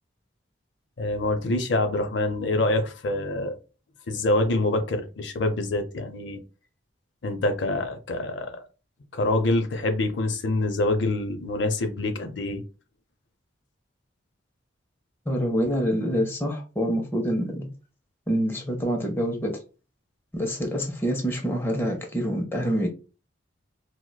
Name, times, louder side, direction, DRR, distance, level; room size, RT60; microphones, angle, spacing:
voice 1, 1.0-3.5 4.1-6.4 7.2-8.6 9.1-12.6, left 2 dB, 65° left, 0.5 m, -26 dB
voice 2, 15.3-17.7 18.3-19.5 20.3-22.9, equal, 10° left, 0.5 m, -26 dB
4.6 x 2.0 x 2.2 m
head